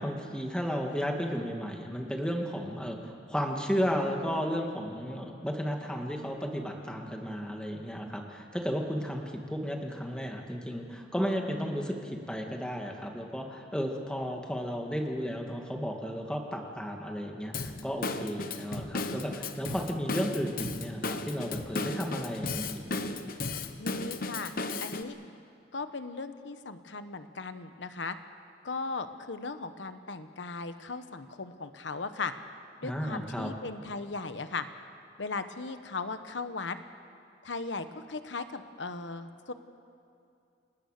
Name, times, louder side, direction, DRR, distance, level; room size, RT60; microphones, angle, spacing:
voice 1, 0.0-22.8 32.8-33.5, equal, 5° left, 1 dB, 2.1 m, -33 dB
Drum kit / Drum, 17.5-25.0, left 3 dB, 50° left, 1.1 m, -35 dB
voice 2, 23.8-24.5 24.8-25.2 25.7-28.2 28.6-32.3 32.8-34.7 35.2-36.8 37.4-39.5, left 3 dB, 90° left, 10 dB, 1.1 m, -37 dB
29.5 x 19.5 x 6.7 m, 2.5 s
head